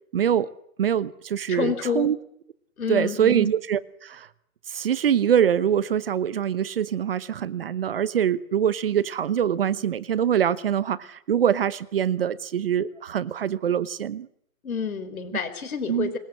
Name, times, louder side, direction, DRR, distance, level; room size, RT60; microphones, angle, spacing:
voice 1, 0.1-0.5 0.8-2.2 2.9-4.3 4.7-14.3 15.9-16.1, right 9 dB, 40° right, 18 dB, 0.9 m, -24 dB
voice 2, 1.5-2.1 2.8-3.5 14.6-16.2, left 6 dB, 75° left, 10 dB, 4.8 m, -29 dB
26.0 x 22.0 x 7.5 m, 0.70 s
hypercardioid pair, 165°, 43 cm